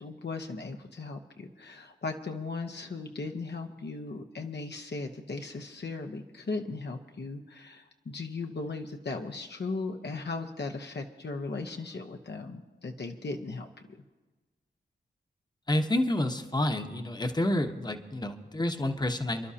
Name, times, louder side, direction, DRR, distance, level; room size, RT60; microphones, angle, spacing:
voice 1, 0.0-13.9, left 3 dB, 65° left, 4 dB, 1.0 m, -37 dB
voice 2, 15.7-19.5, left 1 dB, 20° left, 6 dB, 1.1 m, -29 dB
29.5 x 11.5 x 2.9 m, 1.2 s
cardioid pair, 55°, 19 cm